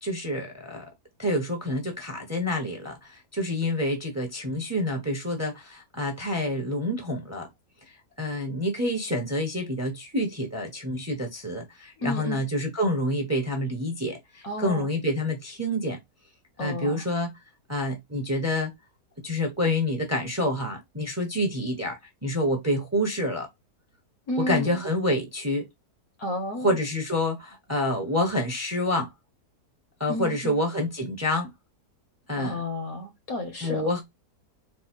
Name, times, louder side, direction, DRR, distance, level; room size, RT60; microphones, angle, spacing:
voice 1, 0.0-0.8 1.2-7.5 8.2-16.0 16.6-17.3 17.7-18.7 19.2-23.5 24.4-25.7 26.6-29.1 30.0-31.5 32.3-32.6 33.6-34.0, left 1 dB, 10° right, 1.0 m, -28 dB
voice 2, 12.0-12.4 14.4-14.9 16.6-17.0 24.3-24.8 26.2-26.8 30.1-30.6 32.4-33.9, left 1 dB, 60° left, 1.6 m, -32 dB
4.7 x 2.3 x 4.5 m
omnidirectional pair, 1.8 m